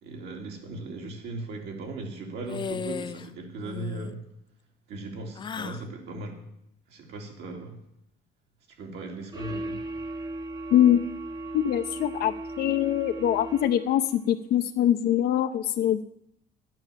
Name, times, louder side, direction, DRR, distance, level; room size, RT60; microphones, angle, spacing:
voice 1, 0.0-4.2 4.9-6.4 6.9-7.8 8.7-9.8, right 2 dB, 80° right, 1 dB, 3.5 m, -38 dB
sound 1, 2.5-3.3 3.6-4.1 5.4-5.9, left 6 dB, 30° left, 0.4 m, -35 dB
sound 2, 9.3-14.2, right 2 dB, 25° right, 0.9 m, -36 dB
voice 2, 10.7-11.0 11.5-16.0, left 11 dB, 65° left, 8 dB, 0.7 m, -23 dB
13.0 x 8.9 x 7.4 m, 0.74 s
cardioid pair, 110°, 17 cm